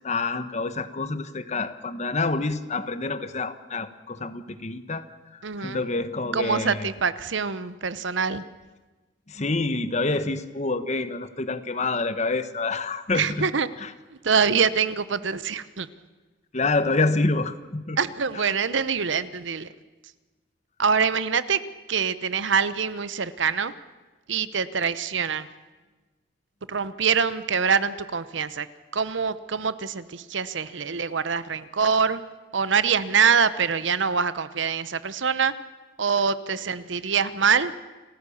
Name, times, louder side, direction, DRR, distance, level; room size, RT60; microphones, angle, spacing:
voice 1, 0.0-5.0 5.6-6.9 9.3-13.5 13.8-13.9 16.5-18.0 18.3-18.5, left 3 dB, 35° left, 12 dB, 1.0 m, -27 dB
voice 2, 5.4-5.8 6.3-8.4 13.1-13.7 14.2-15.9 18.0-19.7 20.8-21.6 21.9-23.7 24.3-25.5 26.7-28.7 28.9-32.2 32.5-35.5 36.0-37.7, right 6 dB, 70° right, 15 dB, 0.8 m, -24 dB
28.0 x 15.0 x 7.1 m, 1.2 s
head